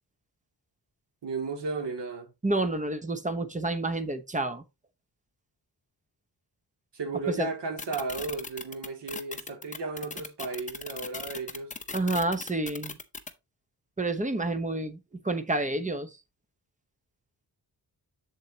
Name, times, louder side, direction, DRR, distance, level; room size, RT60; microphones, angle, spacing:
voice 1, 1.2-2.3 6.9-11.7, right 3 dB, 85° right, 2.6 m, -34 dB
voice 2, 2.4-4.6 7.3-7.5 11.9-13.0 14.0-15.0 15.2-16.1, right 2 dB, 20° right, 0.9 m, -29 dB
sound 1, 7.8-13.3, left 4 dB, 20° left, 0.7 m, -38 dB
7.6 x 7.5 x 2.8 m
wide cardioid pair, 175°, 41 cm